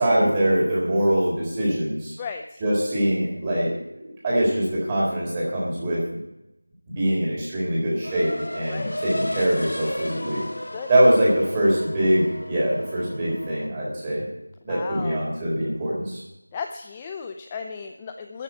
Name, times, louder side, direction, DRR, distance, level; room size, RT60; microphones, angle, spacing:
voice 1, 0.0-2.1 2.6-3.7 4.2-6.0 6.9-10.4 10.9-14.2 14.6-16.2, right 1 dB, 15° right, -5 dB, 4.0 m, -23 dB
voice 2, 2.2-2.6 8.7-9.0 10.7-10.9 14.7-15.2 16.5-18.4, left 6 dB, 15° left, 6 dB, 0.4 m, -35 dB
sound 1, 8.0-13.7, left 1 dB, 65° left, 2.2 m, -34 dB
13.5 x 7.2 x 8.5 m, 0.89 s
figure-of-eight pair, 175°, 0 cm